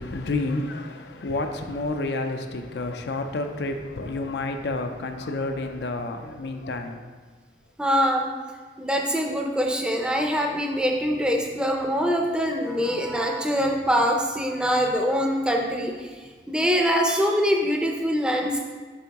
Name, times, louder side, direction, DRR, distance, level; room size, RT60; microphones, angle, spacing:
voice 1, 0.0-7.0, left 2 dB, 70° left, 5 dB, 0.5 m, -30 dB
voice 2, 7.8-8.3 8.8-18.6, equal, 5° right, 1 dB, 0.5 m, -24 dB
7.1 x 5.3 x 2.9 m, 1.5 s
head